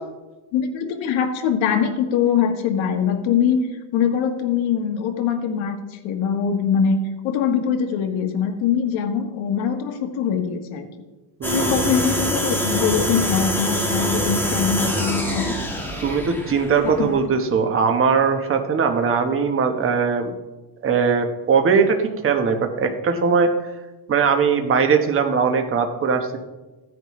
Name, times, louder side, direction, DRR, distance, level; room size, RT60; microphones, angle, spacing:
voice 1, 0.5-10.8 11.5-15.6 16.8-17.1, left 7 dB, 65° left, 4 dB, 1.5 m, -22 dB
sound 1, 11.4-17.2, equal, 5° left, 1.4 m, -25 dB
voice 2, 11.4-11.9 16.0-20.3 20.8-23.5 24.1-26.4, right 5 dB, 25° right, 5 dB, 1.1 m, -20 dB
15.0 x 9.4 x 3.1 m, 1.1 s
cardioid pair, 150°, 50 cm